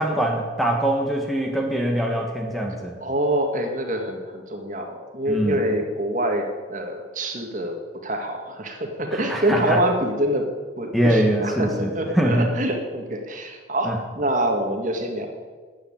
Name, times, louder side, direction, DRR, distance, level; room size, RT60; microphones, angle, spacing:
voice 1, 0.0-2.9 5.3-5.6 9.1-9.8 10.9-12.5 13.8-14.0, right 1 dB, ahead, 1 dB, 1.4 m, -23 dB
voice 2, 3.0-7.7 8.0-10.5 10.8-15.3, right 1 dB, 40° right, 3 dB, 1.9 m, -25 dB
13.0 x 8.9 x 8.9 m, 1.5 s
head